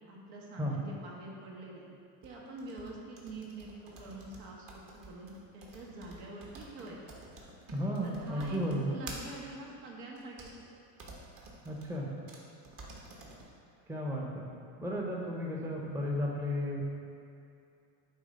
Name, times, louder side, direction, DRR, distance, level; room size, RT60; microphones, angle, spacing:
voice 1, 0.1-1.9 2.2-7.0 8.0-10.7, right 2 dB, 85° right, -3 dB, 1.5 m, -46 dB
sound 1, 2.2-9.4 10.2-10.5 11.0-11.9 12.3-12.4 12.6-13.5, right 2 dB, 40° right, 1.2 m, -49 dB
voice 2, 7.7-8.9 11.6-12.1 13.9-14.4 14.8-16.9, equal, 5° right, -2 dB, 0.6 m, -33 dB
8.1 x 3.0 x 5.1 m, 2.6 s
supercardioid pair, 120°, 49 cm